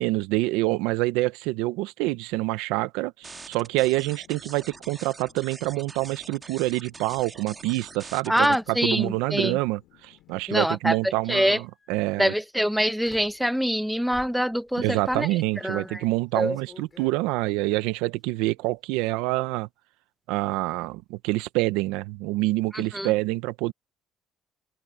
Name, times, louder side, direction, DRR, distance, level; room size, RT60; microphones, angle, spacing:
voice 1, 0.0-12.3 14.8-19.7 20.3-23.7, right 20 dB, 85° right, 1.1 m, -26 dB
sound 1, 3.2-10.6, left 17 dB, 75° left, 5.0 m, -59 dB
sound 2, 3.2-8.5, right 4 dB, 30° right, 2.0 m, -44 dB
sound 3, 6.8-7.3 9.0-9.3 10.0-10.9 11.6-11.9 13.0-13.5 14.1-17.9 18.2-18.8 19.0-19.6, left 4 dB, 30° left, 5.8 m, -53 dB
voice 2, 8.3-9.6 10.5-11.6 12.2-15.3 15.6-16.0 16.4-16.6 22.7-23.1, equal, ahead, 1.1 m, -25 dB
supercardioid pair, 75°, 0 cm